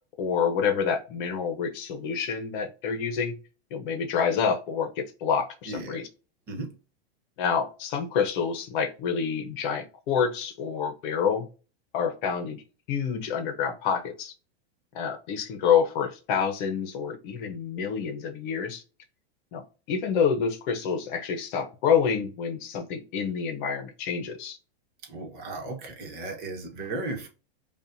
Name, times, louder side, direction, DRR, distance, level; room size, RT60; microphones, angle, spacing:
voice 1, 0.2-3.4 3.7-6.1 7.4-11.5 11.9-12.6 12.9-14.3 14.9-18.8 19.5-24.6, left 6 dB, 50° left, 1.0 m, -27 dB
voice 2, 5.7-6.0 6.5-6.7 25.1-27.3, right 2 dB, 30° right, 1.2 m, -35 dB
5.1 x 2.5 x 2.6 m
supercardioid pair, 145°, 31 cm